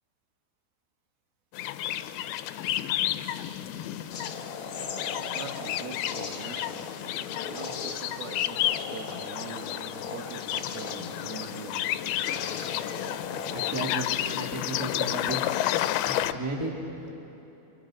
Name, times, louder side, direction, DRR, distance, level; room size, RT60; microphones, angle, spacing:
sound 1, 1.5-16.3, left 13 dB, 85° left, 2.6 m, -31 dB
sound 2, 4.1-13.7, left 5 dB, 55° left, 1.4 m, -38 dB
voice 1, 5.3-6.8 7.4-11.9, right 6 dB, 80° right, 4 dB, 3.3 m, -43 dB
voice 2, 13.5-15.4 16.0-17.1, right 2 dB, 5° right, -1 dB, 2.0 m, -34 dB
30.0 x 26.5 x 5.2 m, 3.0 s
omnidirectional pair, 4.3 m